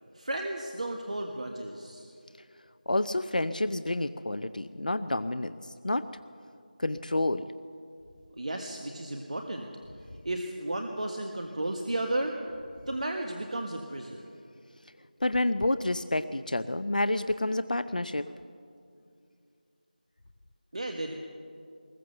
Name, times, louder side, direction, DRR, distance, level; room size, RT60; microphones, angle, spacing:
voice 1, 0.1-2.1 8.4-9.7 10.2-12.5 12.9-14.2 20.7-21.1, right 1 dB, 50° right, 3 dB, 1.6 m, -33 dB
voice 2, 2.9-6.1 6.8-7.4 15.2-18.3, left 2 dB, 60° left, 12 dB, 0.7 m, -29 dB
20.5 x 19.5 x 6.9 m, 2.4 s
figure-of-eight pair, 170°, 5 cm